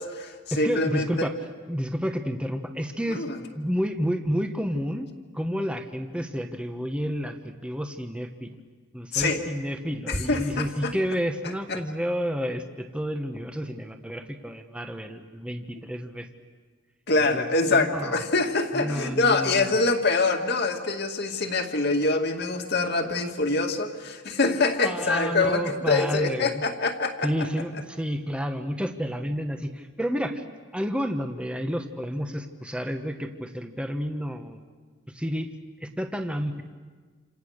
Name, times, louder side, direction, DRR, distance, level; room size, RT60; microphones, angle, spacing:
voice 1, 0.0-1.3 3.1-3.4 9.1-9.4 10.1-10.9 11.7-11.8 17.1-27.5, left 3 dB, 55° left, 4 dB, 2.2 m, -25 dB
voice 2, 0.5-1.3 1.7-5.1 5.3-8.6 8.9-16.3 17.3-18.2 18.7-19.8 24.8-26.6 27.2-30.4 30.7-34.6 35.1-35.5 35.8-36.6, equal, 5° right, 5 dB, 1.3 m, -30 dB
29.0 x 27.5 x 6.6 m, 1.4 s
head